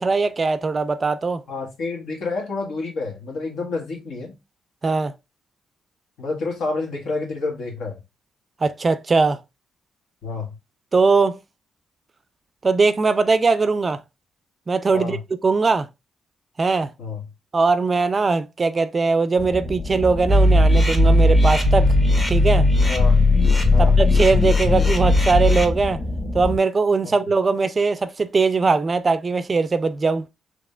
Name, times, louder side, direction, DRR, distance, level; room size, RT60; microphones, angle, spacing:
voice 1, 0.0-1.4 4.8-5.1 8.6-9.4 10.9-11.4 12.6-14.0 14.7-15.2 15.4-15.9 16.6-16.9 17.5-22.0 22.3-22.7 23.8-26.0 26.3-30.3, right 4 dB, 30° right, 0.4 m, -20 dB
voice 2, 1.5-4.3 6.2-8.0 10.2-10.5 14.9-15.2 17.0-17.2 22.9-23.2 23.7-23.9, left 3 dB, 80° left, 1.5 m, -29 dB
sound 1, 19.4-26.6, left 1 dB, 60° left, 1.9 m, -29 dB
sound 2, 20.3-25.6, left 2 dB, 25° left, 0.9 m, -17 dB
4.9 x 3.0 x 2.4 m
cardioid pair, 115°, 0 cm